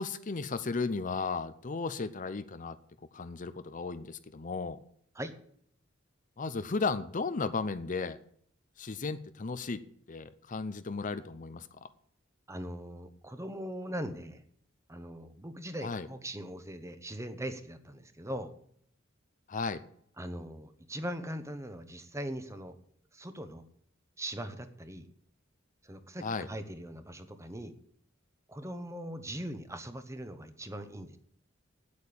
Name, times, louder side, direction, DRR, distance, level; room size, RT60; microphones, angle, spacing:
voice 1, 0.0-2.8 3.1-4.8 6.4-8.2 8.8-9.8 10.1-11.7 15.8-16.1 19.5-19.8 26.2-26.5, left 4 dB, 40° left, 12 dB, 0.6 m, -34 dB
voice 2, 12.5-14.4 14.9-18.5 20.2-22.8 23.1-23.6 24.2-25.1 25.8-27.7 28.5-31.2, right 1 dB, 15° right, 10 dB, 1.0 m, -40 dB
8.8 x 8.4 x 8.7 m, 0.64 s
head